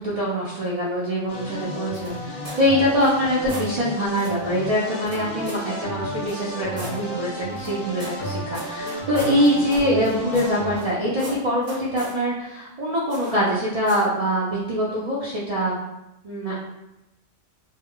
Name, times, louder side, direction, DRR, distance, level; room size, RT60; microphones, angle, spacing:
voice 1, 0.0-15.7 16.2-16.5, equal, 65° right, -7 dB, 0.3 m, -24 dB
sound 1, 1.3-10.8, equal, 60° left, 0.7 m, -33 dB
sound 2, 1.9-2.6 3.0-3.7 4.2-4.4 5.1-5.7 6.3-7.0 7.5-10.9 11.2-12.2 13.1-13.5 13.9-14.1, right 1 dB, 35° right, 0.8 m, -39 dB
2.1 x 2.1 x 3.6 m, 0.92 s
omnidirectional pair, 1.3 m